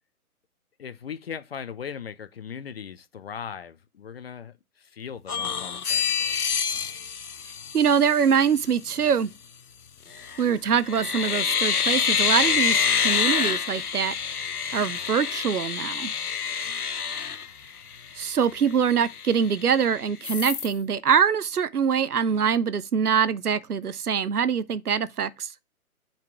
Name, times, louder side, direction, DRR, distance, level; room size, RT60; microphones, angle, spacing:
voice 1, 0.8-6.9, left 7 dB, 45° left, 0.7 m, -39 dB
sound 1, 5.3-8.3 10.1-10.5 10.8-18.1 18.5-18.6 18.9-19.8 20.2-20.7, left 6 dB, 80° left, 0.9 m, -27 dB
voice 2, 7.7-9.3 10.4-14.1 14.7-16.1 18.2-25.5, right 7 dB, 85° right, 0.7 m, -24 dB
5.3 x 5.1 x 6.0 m
figure-of-eight pair, 135°, 44 cm